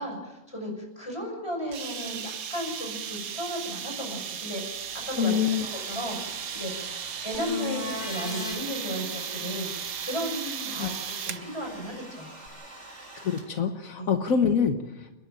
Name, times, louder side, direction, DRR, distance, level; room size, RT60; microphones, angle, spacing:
voice 1, 0.0-5.3 5.6-6.9 7.2-12.4 14.0-14.1, equal, 20° left, 1 dB, 6.4 m, -35 dB
sound 1, 1.7-11.5, right 8 dB, 85° right, 1.5 m, -36 dB
Domestic sounds home sounds, 4.6-13.8, right 1 dB, 55° right, 4.0 m, -46 dB
voice 2, 5.2-5.7 10.8-10.9 13.2-15.1, left 7 dB, 75° left, 6 dB, 1.5 m, -25 dB
sound 2, 7.3-8.6 12.5-12.6, left 3 dB, 35° left, 2.3 m, -34 dB
30.0 x 10.5 x 9.0 m, 1.0 s
omnidirectional pair, 1.5 m